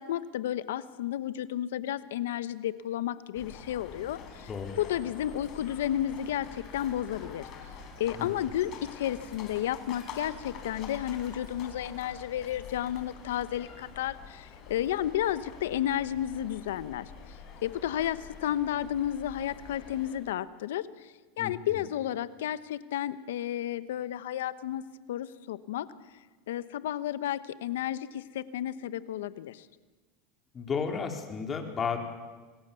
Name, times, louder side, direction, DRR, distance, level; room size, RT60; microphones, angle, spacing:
voice 1, 0.0-4.5 4.8-7.5 8.0-17.1 17.6-24.8 25.1-25.9 26.5-29.7, left 11 dB, 85° left, 15 dB, 1.2 m, -32 dB
sound 1, 3.3-20.2, left 5 dB, 45° left, 5.7 m, -46 dB
voice 2, 4.5-4.8 8.1-8.3 21.4-21.8 30.5-32.0, left 6 dB, 25° left, 4 dB, 3.9 m, -33 dB
27.0 x 19.5 x 7.2 m, 1.3 s
supercardioid pair, 120°, 0 cm